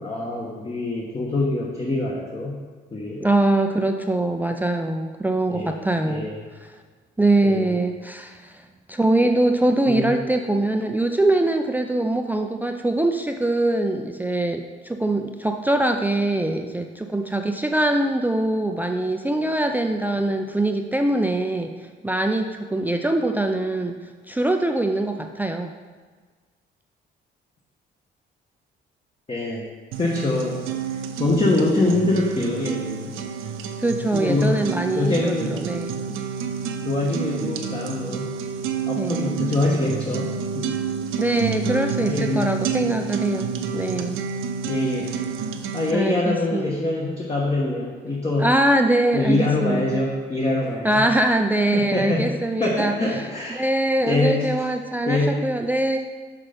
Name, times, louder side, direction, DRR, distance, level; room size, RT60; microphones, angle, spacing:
voice 1, 0.0-2.6 2.9-3.2 5.5-5.7 6.0-6.4 7.4-7.7 9.9-10.1 29.3-29.6 30.0-30.6 31.2-33.1 34.1-34.6 34.9-35.6 36.8-38.3 38.9-40.8 42.0-42.5 44.7-45.1 45.7-48.5 49.1-51.0 51.7-52.3 52.6-53.6 54.0-54.5 55.1-55.4, left 2 dB, 30° left, -3 dB, 1.2 m, -24 dB
voice 2, 3.2-6.3 6.6-6.7 7.2-21.8 22.0-24.0 24.3-25.7 33.8-35.9 39.0-39.4 41.2-43.5 43.7-44.2 45.9-46.7 48.4-50.0 50.8-53.2 53.5-56.0, right 1 dB, 10° right, 5 dB, 0.4 m, -23 dB
sound 1, 29.9-45.9, right 6 dB, 85° right, 0.6 m, -29 dB
6.1 x 5.7 x 5.1 m, 1.4 s
cardioid pair, 90°, 20 cm